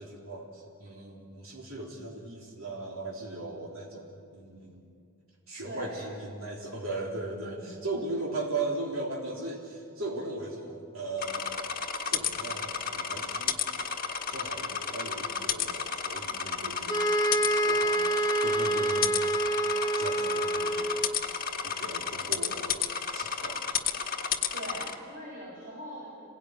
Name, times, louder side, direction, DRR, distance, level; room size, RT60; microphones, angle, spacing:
voice 1, 0.0-4.9 5.5-11.6 12.1-13.6 14.3-17.1 17.6-19.1 20.0-20.9 21.6-22.8 23.1-23.6, right 2 dB, 75° right, -2 dB, 3.5 m, -38 dB
voice 2, 5.6-6.1 7.3-7.8 24.5-26.1, equal, 40° right, -5 dB, 6.5 m, -42 dB
sound 1, 11.2-24.9, left 7 dB, 45° left, 1.6 m, -32 dB
sound 2, 16.9-21.3, right 1 dB, 15° left, 0.7 m, -27 dB
28.0 x 18.0 x 9.8 m, 2.3 s
head